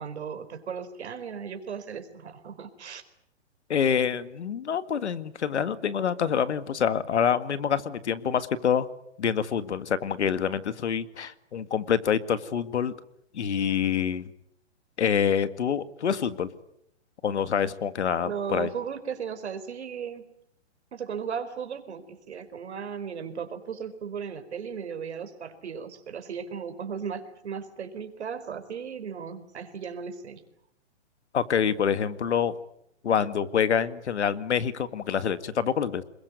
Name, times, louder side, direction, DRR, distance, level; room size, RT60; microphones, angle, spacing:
voice 1, 0.0-3.0 18.2-20.2 20.9-30.4, right 7 dB, 70° right, 8 dB, 4.5 m, -36 dB
voice 2, 3.7-8.9 9.2-12.9 13.3-14.3 15.0-16.5 17.2-18.7 31.3-32.5 33.0-36.0, left 7 dB, 75° left, 13 dB, 1.9 m, -26 dB
27.0 x 22.0 x 9.4 m, 0.75 s
hypercardioid pair, 160°, 35 cm